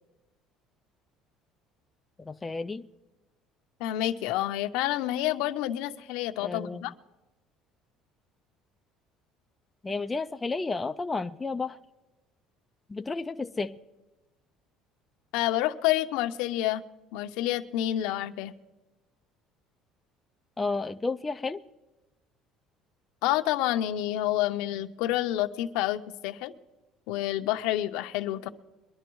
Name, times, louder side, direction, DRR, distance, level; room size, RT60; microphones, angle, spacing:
voice 1, 2.2-2.9 6.4-6.9 9.8-11.8 12.9-13.7 20.6-21.6, left 3 dB, 10° left, 7 dB, 0.3 m, -32 dB
voice 2, 3.8-6.9 15.3-16.8 17.1-18.5 23.2-26.5 27.1-28.5, left 14 dB, 80° left, 8 dB, 0.7 m, -28 dB
23.5 x 11.0 x 3.1 m, 1.1 s
cardioid pair, 170°, 0 cm